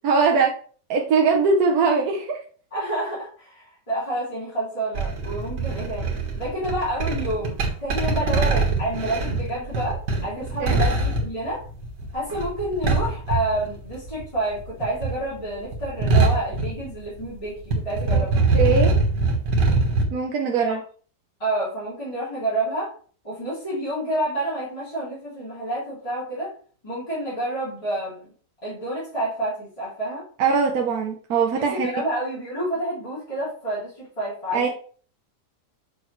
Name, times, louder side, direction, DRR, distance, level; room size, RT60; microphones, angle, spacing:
voice 1, 0.0-0.5 0.9-2.4 10.6-10.8 18.1-18.2 18.5-18.9 20.1-20.8 30.4-31.9 34.5-34.7, right 5 dB, 65° right, 1 dB, 1.3 m, -21 dB
voice 2, 2.7-11.6 12.1-18.5 20.6-20.8 21.4-22.9 23.2-26.5 26.8-28.3 28.6-30.2 31.6-34.7, right 1 dB, 20° left, -9 dB, 2.9 m, -29 dB
sound 1, 4.9-14.2 14.5-17.4 17.6-20.0, right 3 dB, 85° right, 2.0 m, -23 dB
6.8 x 5.9 x 3.1 m, 0.44 s
omnidirectional pair, 1.8 m